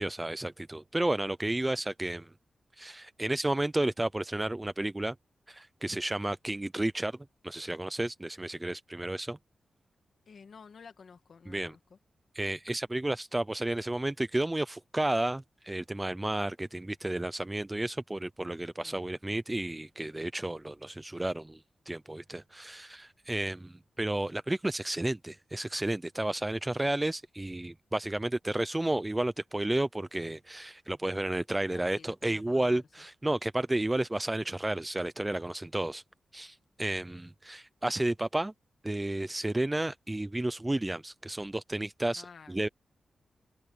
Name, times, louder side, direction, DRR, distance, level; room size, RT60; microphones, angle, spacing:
voice 1, 0.0-2.3 2.8-5.1 5.5-7.2 7.4-9.4 11.5-11.8 12.3-36.0 36.3-38.5 38.8-42.7, right 1 dB, 15° right, 0.6 m, -32 dB
voice 2, 10.3-11.8 18.8-19.1 20.1-20.2 31.7-32.8 42.2-42.6, left 5 dB, 65° left, 2.0 m, -52 dB
cardioid pair, 80°, 0 cm